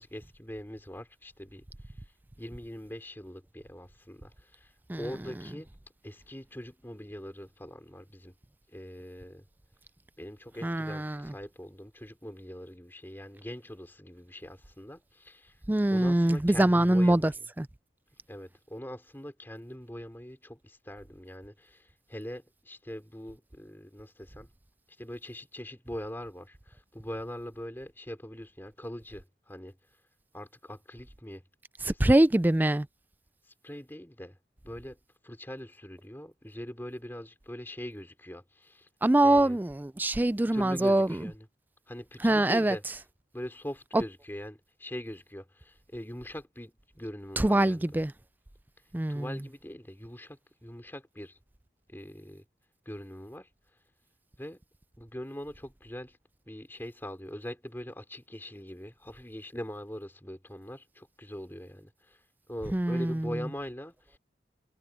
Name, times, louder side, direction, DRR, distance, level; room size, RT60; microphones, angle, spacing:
voice 1, 0.0-2.1 2.4-5.7 6.0-8.3 8.7-9.5 10.2-15.6 15.9-17.3 18.3-24.5 25.0-29.8 30.3-31.4 31.8-32.1 33.5-34.4 34.6-35.0 35.2-38.9 39.2-39.6 40.5-41.5 41.9-42.8 43.3-48.0 49.1-51.4 51.9-52.4 52.8-53.5 54.4-54.6 55.0-56.2 56.5-62.2 62.5-64.2, equal, 10° left, 3.1 m, -42 dB
voice 2, 10.6-11.2 15.7-17.3 17.6-17.7 31.9-32.9 39.0-41.1 42.2-42.8 43.9-44.0 47.4-48.1 48.9-49.3 62.7-63.3, right 1 dB, 10° right, 0.3 m, -24 dB
head